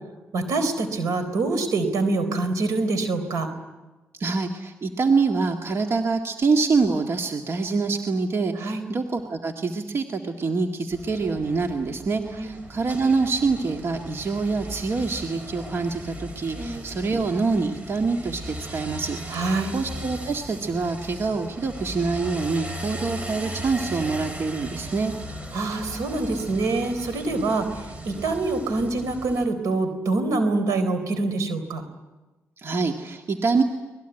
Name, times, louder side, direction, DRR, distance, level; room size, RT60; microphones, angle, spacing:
voice 1, 0.3-3.5 8.6-8.8 12.4-12.5 16.6-16.8 19.3-19.7 25.5-31.8, right 3 dB, 85° right, 10 dB, 4.0 m, -25 dB
voice 2, 4.2-25.1 32.6-33.6, right 4 dB, 50° right, 3 dB, 2.0 m, -25 dB
sound 1, 10.9-29.5, right 1 dB, 25° right, 4.6 m, -38 dB
24.5 x 20.0 x 9.1 m, 1.1 s
cardioid pair, 70°, 5 cm